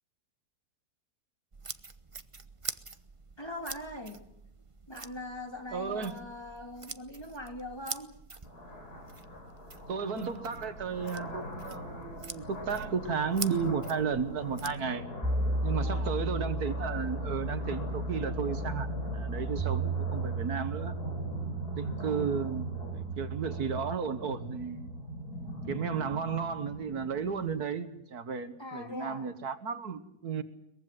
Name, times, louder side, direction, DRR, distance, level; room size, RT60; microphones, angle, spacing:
sound 1, 1.5-14.8, right 4 dB, 25° right, 0.8 m, -45 dB
voice 1, 3.4-4.3 4.9-8.1 15.8-16.3 28.6-29.3, left 1 dB, 15° left, 3.2 m, -41 dB
voice 2, 5.7-6.1 9.9-15.1 15.6-21.0 21.8-24.9 25.7-30.4, right 6 dB, 75° right, 1.9 m, -34 dB
sound 2, 8.4-27.6, left 1 dB, 80° left, 5.0 m, -41 dB
sound 3, 15.2-24.0, right 2 dB, 5° right, 1.7 m, -34 dB
23.0 x 21.5 x 7.7 m
omnidirectional pair, 1.6 m